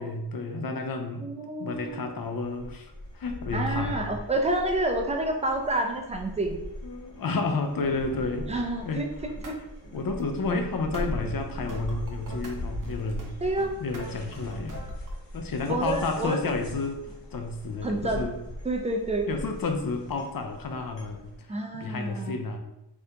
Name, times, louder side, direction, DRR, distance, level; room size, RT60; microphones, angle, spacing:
voice 1, 0.0-1.2 1.6-4.1 6.8-9.0 9.9-13.3 13.8-14.8 15.3-18.4 19.3-22.6, left 3 dB, 50° left, 5 dB, 0.5 m, -31 dB
voice 2, 1.2-2.0 3.5-6.6 8.5-9.1 9.5-9.6 13.4-13.7 15.7-16.4 17.8-18.3 18.6-19.3 21.5-22.4, right 2 dB, 15° right, 3 dB, 0.4 m, -28 dB
sound 1, 1.7-21.4, left 1 dB, 80° left, 1.0 m, -40 dB
sound 2, 7.7-9.3, right 4 dB, 85° right, 0.5 m, -44 dB
sound 3, 9.3-9.5 9.8-12.5 12.8-13.3 13.6-15.1, right 1 dB, 45° right, 0.8 m, -43 dB
2.7 x 2.6 x 3.3 m, 0.89 s
wide cardioid pair, 65°, 44 cm